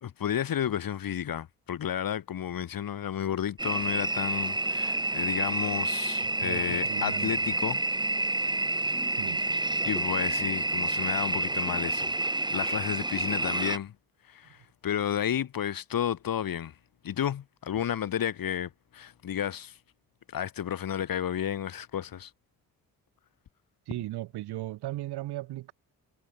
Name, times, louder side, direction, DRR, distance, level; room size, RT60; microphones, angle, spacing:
voice 1, 0.0-7.8 9.9-12.1 12.5-13.9 14.3-16.7 17.0-19.8 20.3-22.3, left 10 dB, 60° left, 2.9 m, -32 dB
sound 1, 3.6-13.8, right 2 dB, 10° right, 1.8 m, -29 dB
voice 2, 6.2-7.5 9.1-9.4 23.9-25.7, right 16 dB, 80° right, 2.0 m, -37 dB
supercardioid pair, 65°, 39 cm